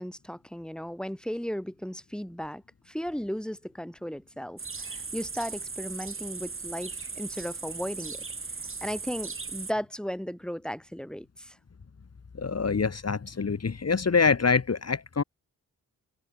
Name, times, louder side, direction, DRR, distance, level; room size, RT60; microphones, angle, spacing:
voice 1, 0.0-8.2 8.8-11.6, equal, ahead, 5.4 m, -36 dB
sound 1, 4.6-9.7, right 4 dB, 35° right, 2.3 m, -38 dB
voice 2, 12.4-15.2, left 5 dB, 40° left, 2.3 m, -25 dB
cardioid pair, 60°, 37 cm